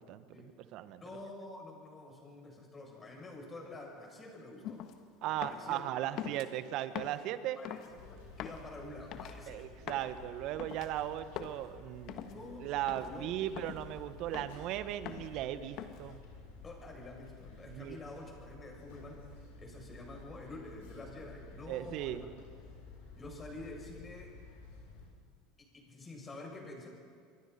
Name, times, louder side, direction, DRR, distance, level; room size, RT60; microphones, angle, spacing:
voice 1, 0.0-1.0 5.2-7.6 9.5-12.3 12.6-16.2 17.7-18.0 21.7-22.2, right 12 dB, 55° right, 12 dB, 1.3 m, -37 dB
voice 2, 1.0-4.8 5.2-5.8 7.5-9.7 12.3-13.3 14.3-14.5 16.6-19.2 19.6-22.3 23.2-24.3 25.6-26.9, left 2 dB, 25° left, 0 dB, 8.0 m, -48 dB
sound 1, 4.6-5.0 5.4-5.7 6.2-6.5 6.9-7.3 7.6-7.9 8.4-8.6 9.1-9.4 9.9-10.1 10.6-10.9 11.4-11.6 12.1-12.4 12.9-13.1 13.6-13.8 14.3-14.6 15.0-15.3 15.8-16.1, left 10 dB, 55° left, 1.6 m, -43 dB
sound 2, 7.9-25.1, left 2 dB, 70° left, 7.7 m, -52 dB
28.5 x 23.5 x 4.4 m, 2.2 s
hypercardioid pair, 80°, 0 cm